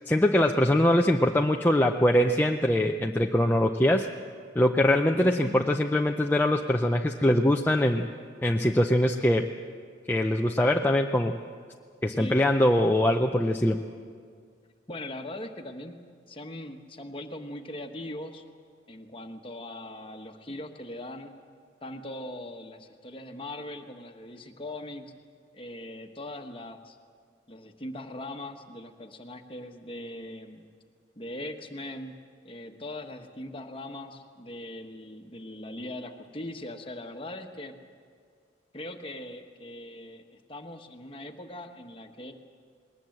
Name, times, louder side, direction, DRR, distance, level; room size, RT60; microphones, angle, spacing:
voice 1, 0.0-4.1 4.6-8.1 8.4-9.5 10.1-11.4 12.0-13.8, left 1 dB, 10° left, 2 dB, 0.5 m, -23 dB
voice 2, 5.1-5.6 12.1-12.4 14.9-16.0 16.3-18.4 18.9-21.3 21.8-25.1 25.5-27.0 27.5-30.6 31.2-32.1 32.4-37.7 38.7-42.3, left 1 dB, 30° left, 5 dB, 1.3 m, -40 dB
21.0 x 19.0 x 7.8 m, 2.1 s
head